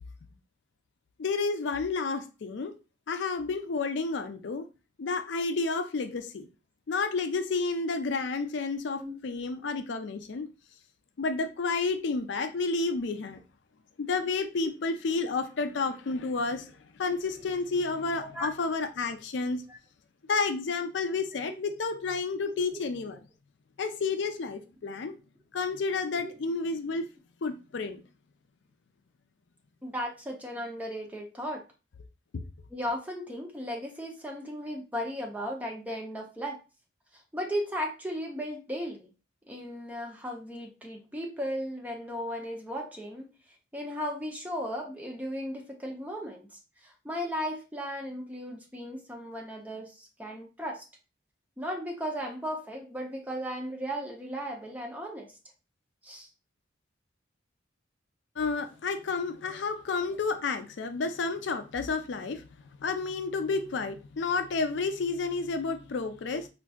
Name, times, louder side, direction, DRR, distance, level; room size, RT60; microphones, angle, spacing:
voice 1, 1.2-2.7 3.1-4.7 5.0-6.5 6.9-10.5 11.2-13.4 14.0-16.7 17.0-19.6 20.3-23.2 23.8-25.2 25.5-27.1 27.4-28.0 32.3-32.4 58.4-62.5 62.8-66.5, left 4 dB, 65° left, 0.4 m, -30 dB
voice 2, 9.0-9.4 14.6-14.7 17.4-17.5 18.1-18.5 19.7-19.8 26.1-26.4 29.8-31.6 32.7-36.6 37.1-39.1 39.5-43.3 43.7-50.9 51.6-55.4 56.0-56.3 63.6-63.7, equal, 10° right, 0.5 m, -36 dB
4.4 x 2.5 x 2.2 m
head